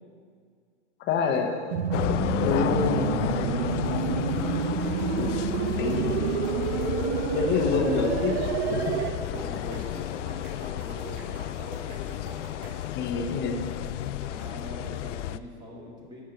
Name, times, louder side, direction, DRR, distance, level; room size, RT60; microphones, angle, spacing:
voice 1, 1.0-1.6 2.4-3.1 4.8-4.9 5.2-5.3 5.8-6.2 7.3-9.0 12.9-13.6, left 5 dB, 30° left, 4 dB, 1.0 m, -27 dB
sound 1, 1.4-12.9, right 2 dB, 45° right, 2.8 m, -46 dB
sound 2, 1.7-9.1, right 7 dB, 60° right, 0.9 m, -28 dB
sound 3, 1.9-15.4, left 13 dB, 80° left, 0.5 m, -32 dB
voice 2, 9.3-12.0 14.2-16.2, equal, 10° right, -3 dB, 1.9 m, -43 dB
10.5 x 7.4 x 5.2 m, 2.1 s
hypercardioid pair, 140°, 36 cm